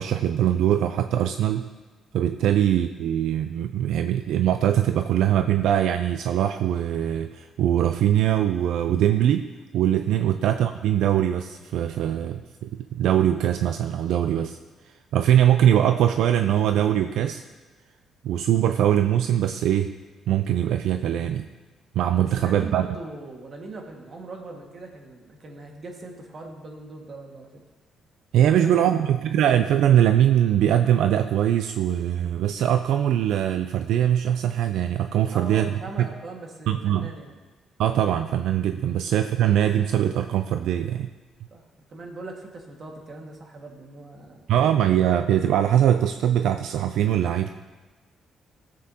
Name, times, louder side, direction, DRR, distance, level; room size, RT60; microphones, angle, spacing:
voice 1, 0.0-1.7 2.1-14.6 15.1-17.4 18.2-19.9 20.3-21.5 22.0-22.9 28.3-36.1 36.7-37.1 37.8-41.1 44.5-47.5, right 10 dB, 80° right, 8 dB, 0.3 m, -22 dB
voice 2, 22.4-27.5 28.4-29.1 35.3-37.4 38.8-39.0 41.5-41.6 41.9-44.4, right 2 dB, 45° right, 1 dB, 1.8 m, -40 dB
17.0 x 7.5 x 2.8 m, 1.2 s
cardioid pair, 90°, 0 cm